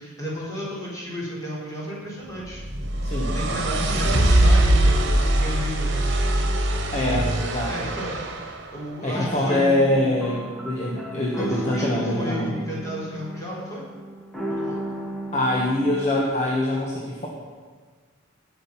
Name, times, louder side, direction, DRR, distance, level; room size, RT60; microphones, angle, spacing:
voice 1, 0.0-2.6 3.3-6.0 7.6-8.3 8.7-10.2 11.4-11.9 12.1-13.8 14.5-14.8, equal, 15° left, -6 dB, 4.8 m, -33 dB
sound 1, 2.5-8.6, right 1 dB, 60° right, 1.4 m, -21 dB
voice 2, 3.0-3.4 6.9-7.9 9.0-12.5 15.3-17.3, left 1 dB, 35° left, -3 dB, 1.6 m, -24 dB
sound 2, 9.1-16.2, right 1 dB, ahead, 1.5 m, -34 dB
18.0 x 6.5 x 5.8 m, 1.5 s
head